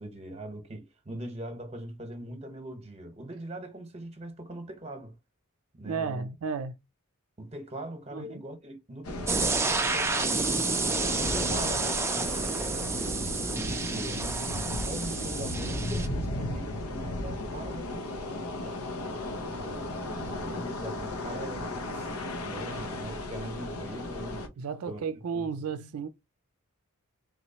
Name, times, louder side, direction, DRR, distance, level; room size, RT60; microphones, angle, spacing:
voice 1, 0.0-5.2 5.7-6.3 7.4-18.8 19.3-22.1 22.4-24.5 24.9-25.1 25.3-25.5, right 1 dB, 30° right, 0.9 m, -41 dB
voice 2, 5.8-6.8 8.1-8.4 22.7-23.0 24.6-26.1, right 5 dB, 90° right, 0.4 m, -34 dB
sound 1, 9.0-24.5, left 1 dB, 90° left, 0.8 m, -35 dB
sound 2, 9.3-16.1, right 3 dB, 10° right, 0.4 m, -30 dB
3.7 x 3.0 x 2.8 m
head